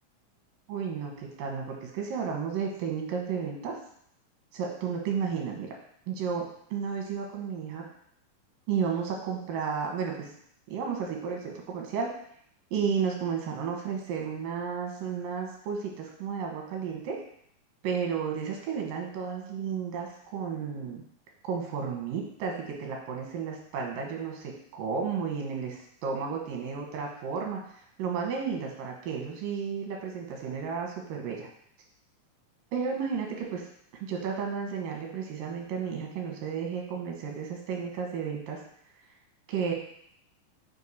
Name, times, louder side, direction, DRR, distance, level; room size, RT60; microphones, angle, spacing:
voice 1, 0.7-3.8 4.5-5.7 6.1-6.5 6.7-7.8 8.7-10.3 10.7-12.1 12.7-17.2 17.8-21.0 21.4-22.5 22.8-27.6 28.0-31.5 32.7-33.7 34.0-38.6 39.5-39.7, right 6 dB, 90° right, 0 dB, 2.7 m, -32 dB
6.4 x 2.7 x 5.3 m, 0.67 s
omnidirectional pair, 3.8 m